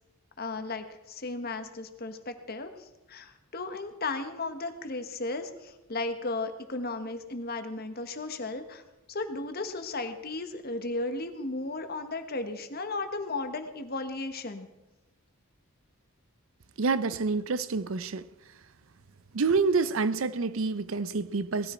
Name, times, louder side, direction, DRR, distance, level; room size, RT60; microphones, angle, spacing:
voice 1, 0.4-8.8 9.1-14.7, left 3 dB, 45° left, 1.3 m, -35 dB
voice 2, 16.8-18.2 19.3-21.7, right 4 dB, 65° right, 0.6 m, -27 dB
19.0 x 13.5 x 4.4 m
head